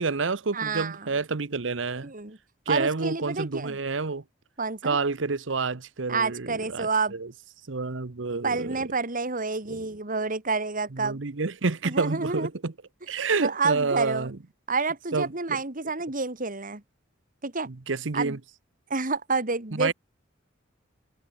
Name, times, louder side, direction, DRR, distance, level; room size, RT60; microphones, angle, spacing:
voice 1, 0.0-2.1 2.7-4.2 4.8-7.3 7.7-8.8 9.7-9.8 10.9-12.7 13.1-14.4 15.1-15.6 17.7-18.4 19.7-19.9, right 4 dB, 80° right, 1.0 m, -29 dB
voice 2, 0.5-1.1 2.0-2.4 2.7-3.8 4.6-5.0 6.1-7.2 8.4-11.2 11.8-12.5 13.4-14.3 14.7-16.8 17.4-17.7 18.1-18.4 18.9-19.9, right 4 dB, 45° right, 2.8 m, -29 dB
head